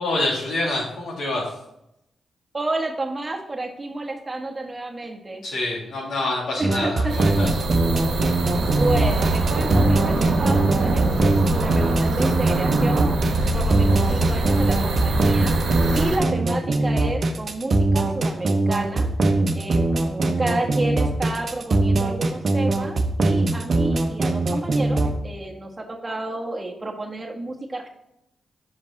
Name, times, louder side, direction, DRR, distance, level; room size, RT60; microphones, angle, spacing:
voice 1, 0.0-1.5 5.4-7.5, left 2 dB, 75° left, -3 dB, 2.1 m, -26 dB
voice 2, 2.5-5.4 6.5-7.4 8.3-13.2 13.5-15.6 15.9-27.9, right 2 dB, 30° right, 1 dB, 1.4 m, -30 dB
sound 1, 6.6-25.1, right 2 dB, 55° right, 0.9 m, -21 dB
sound 2, 7.1-16.2, right 2 dB, 85° right, 1.2 m, -24 dB
6.0 x 5.2 x 4.0 m, 0.81 s
supercardioid pair, 50°, 0 cm